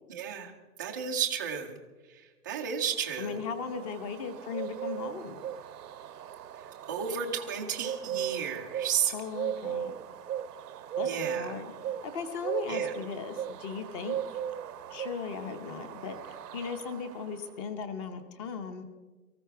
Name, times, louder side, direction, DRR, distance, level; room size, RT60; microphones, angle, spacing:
voice 1, 0.1-1.8 2.0-3.4 6.6-9.1 11.0-11.6 12.7-12.9, right 8 dB, 15° right, -1 dB, 0.4 m, -33 dB
sound 1, 2.9-17.5, right 9 dB, 85° right, 0.9 m, -38 dB
voice 2, 3.2-5.4 9.1-9.9 11.0-11.7 12.0-14.4 14.9-18.8, left 5 dB, 20° left, 10 dB, 0.8 m, -37 dB
19.0 x 14.5 x 4.6 m, 1.3 s
hypercardioid pair, 155°, 46 cm